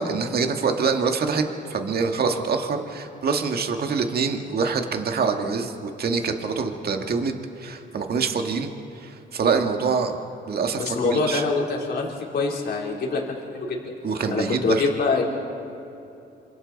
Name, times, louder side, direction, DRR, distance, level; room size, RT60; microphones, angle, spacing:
voice 1, 0.0-1.4 1.7-10.2 10.5-11.4 14.0-14.8, right 5 dB, 50° right, 4 dB, 1.8 m, -25 dB
voice 2, 10.8-13.2 13.5-13.9 14.3-15.2, left 4 dB, 55° left, -2 dB, 3.6 m, -24 dB
27.5 x 26.0 x 4.1 m, 2.9 s
cardioid pair, 90°, 20 cm